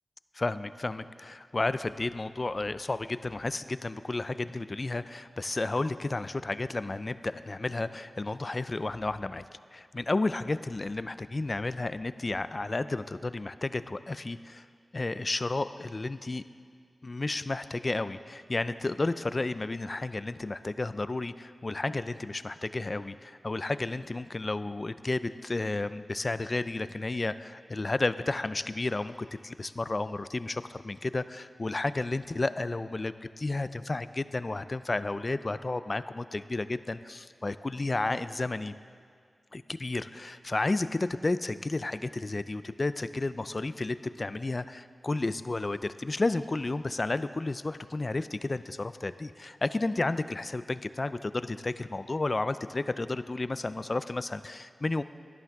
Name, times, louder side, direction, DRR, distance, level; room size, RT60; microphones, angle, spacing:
voice 1, 0.3-9.5 9.7-14.6 14.9-16.4 17.0-29.1 29.4-38.7 39.5-55.0, left 2 dB, 40° left, 13 dB, 0.3 m, -32 dB
12.0 x 11.0 x 3.5 m, 2.2 s
wide cardioid pair, 75°, 0 cm